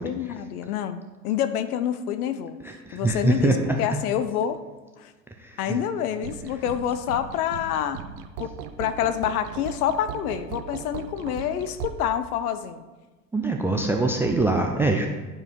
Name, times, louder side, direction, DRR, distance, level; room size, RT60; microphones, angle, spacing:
voice 1, 0.0-2.6 2.9-3.5 3.8-4.6 5.0-5.1 5.6-8.0 8.4-8.5 8.8-12.8, left 9 dB, 65° left, 12 dB, 0.8 m, -27 dB
voice 2, 2.6-3.8 5.4-5.8 13.3-15.1, right 2 dB, 5° right, 4 dB, 0.3 m, -23 dB
sound 1, 6.1-11.9, right 8 dB, 70° right, 0.9 m, -38 dB
10.5 x 4.7 x 5.1 m, 1.2 s
hypercardioid pair, 85°, 48 cm